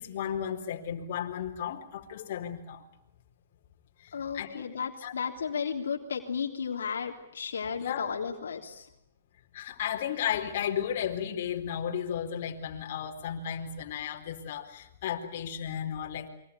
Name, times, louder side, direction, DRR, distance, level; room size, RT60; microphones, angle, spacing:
voice 1, 0.0-2.9 4.0-4.6 5.0-5.1 7.8-8.1 9.5-16.3, left 9 dB, 55° left, 3 dB, 4.2 m, -34 dB
voice 2, 4.1-8.9, left 6 dB, 85° left, 2 dB, 3.4 m, -34 dB
29.5 x 24.0 x 8.4 m, 0.75 s
hypercardioid pair, 145°, 0 cm